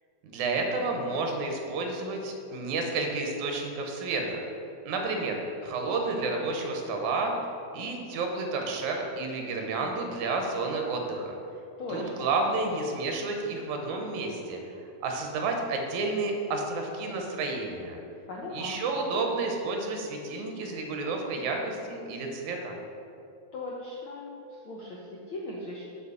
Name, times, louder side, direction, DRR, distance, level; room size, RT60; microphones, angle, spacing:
voice 1, 0.2-4.4 4.9-7.4 7.7-11.3 11.9-14.6 15.0-18.0 18.5-22.7, right 3 dB, 80° right, 2 dB, 2.3 m, -31 dB
voice 2, 11.8-12.3 18.3-18.8 23.5-25.8, left 2 dB, 75° left, -4 dB, 1.2 m, -38 dB
8.0 x 4.1 x 7.0 m, 2.6 s
omnidirectional pair, 3.4 m